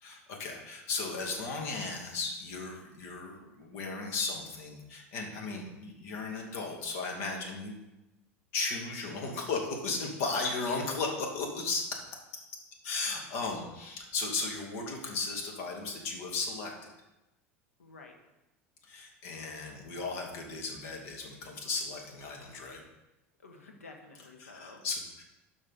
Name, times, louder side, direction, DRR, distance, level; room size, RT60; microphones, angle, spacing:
voice 1, 0.0-7.8 8.5-11.8 12.8-16.9 18.8-22.8 24.4-25.2, left 3 dB, 65° left, 1 dB, 2.3 m, -35 dB
voice 2, 10.3-10.9 17.8-18.1 23.4-24.8, left 3 dB, 90° left, 2 dB, 1.5 m, -50 dB
12.5 x 5.5 x 4.1 m, 0.98 s
hypercardioid pair, 80°, 8 cm